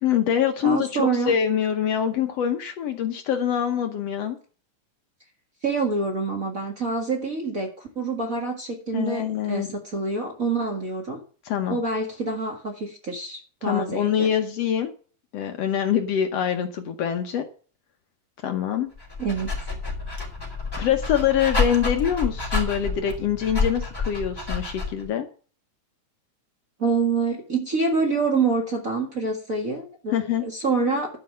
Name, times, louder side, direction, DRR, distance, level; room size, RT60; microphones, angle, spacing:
voice 1, 0.0-4.4 8.9-9.7 11.5-11.8 13.6-14.9 15.3-17.4 18.4-18.9 20.8-25.3 30.1-30.5, left 9 dB, 65° left, 6 dB, 1.9 m, -24 dB
voice 2, 0.6-1.3 5.6-11.2 11.7-14.3 19.2-19.7 26.8-30.2 30.4-31.1, right 4 dB, 35° right, 2 dB, 1.7 m, -26 dB
Dog, 19.0-25.1, left 4 dB, 5° left, 4.3 m, -28 dB
11.5 x 5.5 x 7.6 m, 0.40 s
omnidirectional pair, 3.5 m